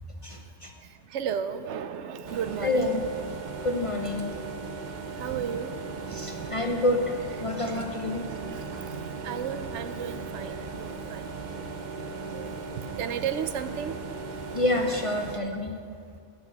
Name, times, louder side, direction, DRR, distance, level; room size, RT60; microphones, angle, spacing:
voice 1, 0.2-0.7 2.6-3.0 3.6-4.3 6.1-7.0 7.4-8.3 14.5-15.8, left 2 dB, 40° left, 3 dB, 0.5 m, -28 dB
voice 2, 1.1-3.0 5.2-5.7 6.1-6.2 6.6-6.7 7.5-7.8 8.5-11.2 12.3-12.6 13.0-14.0, right 8 dB, 85° right, 10 dB, 0.9 m, -34 dB
sound 1, 2.2-15.4, right 4 dB, 50° right, 0.7 m, -37 dB
8.6 x 5.9 x 7.1 m, 2.2 s
omnidirectional pair, 1.2 m